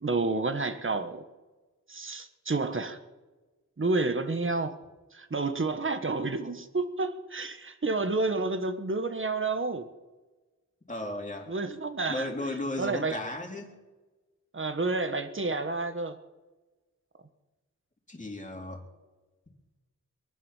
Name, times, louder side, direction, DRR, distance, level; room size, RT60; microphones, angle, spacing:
voice 1, 0.0-1.2 1.9-3.0 3.8-4.8 5.1-9.9 11.5-12.3 12.8-13.1 14.5-16.2, right 3 dB, 40° right, 9 dB, 1.4 m, -30 dB
voice 2, 10.9-11.5 12.1-13.8 18.1-18.8, left 1 dB, 25° left, 1 dB, 3.0 m, -35 dB
23.0 x 10.5 x 5.7 m, 1.2 s
wide cardioid pair, 90°, 31 cm